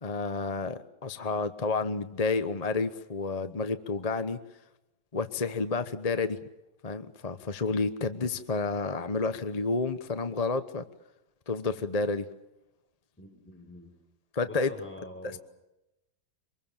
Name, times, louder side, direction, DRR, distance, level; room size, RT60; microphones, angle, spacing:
voice 1, 0.0-4.4 5.1-6.4 6.8-10.8 11.5-12.3 14.3-14.7 15.2-15.4, left 4 dB, 25° left, 9 dB, 1.0 m, -30 dB
voice 2, 13.2-13.9 14.4-15.4, left 1 dB, 5° left, 2 dB, 5.5 m, -45 dB
26.0 x 22.0 x 7.3 m, 0.91 s
omnidirectional pair, 1.8 m